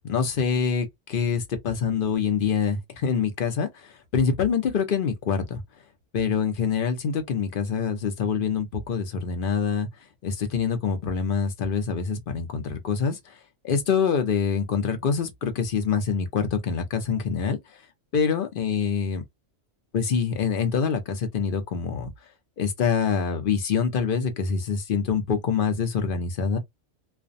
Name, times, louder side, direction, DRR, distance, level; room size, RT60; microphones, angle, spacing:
voice 1, 0.0-3.7 4.1-5.6 6.1-9.9 10.2-13.2 13.6-17.6 18.1-19.2 19.9-22.1 22.6-26.6, left 6 dB, 55° left, 0.7 m, -25 dB
2.4 x 2.2 x 2.5 m
omnidirectional pair, 1.3 m